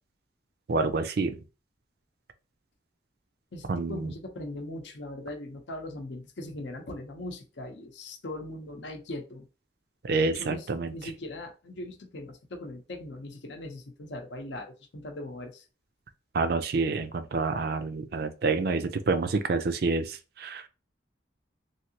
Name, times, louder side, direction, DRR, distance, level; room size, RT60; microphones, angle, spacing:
voice 1, 0.7-1.4 3.7-4.1 10.0-11.0 16.3-20.7, right 3 dB, 55° right, 0.4 m, -28 dB
voice 2, 3.5-9.5 10.2-15.6, left 1 dB, 75° left, 0.7 m, -40 dB
3.2 x 2.7 x 2.8 m
head